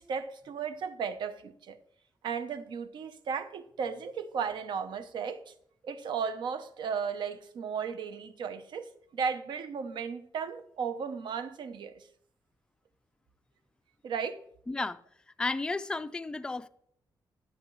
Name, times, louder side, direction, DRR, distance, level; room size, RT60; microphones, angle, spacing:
voice 1, 0.0-1.8 2.2-5.5 5.8-12.1 14.0-14.4, right 6 dB, 75° right, 0.8 m, -35 dB
voice 2, 14.7-15.0 15.4-16.7, left 3 dB, 10° left, 0.3 m, -33 dB
14.0 x 7.9 x 3.1 m
wide cardioid pair, 175°, 8 cm